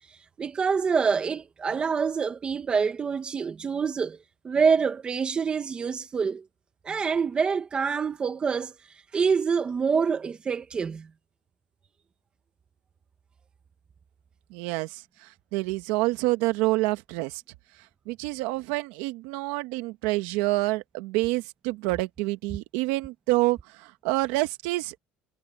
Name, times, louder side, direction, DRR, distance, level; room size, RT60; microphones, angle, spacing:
voice 1, 0.4-4.2 4.4-6.4 6.8-8.7 9.1-11.1, right 5 dB, 25° right, 1.5 m, -26 dB
voice 2, 14.5-17.4 18.0-24.9, right 20 dB, 90° right, 1.7 m, -27 dB
cardioid pair, 140°, 4 cm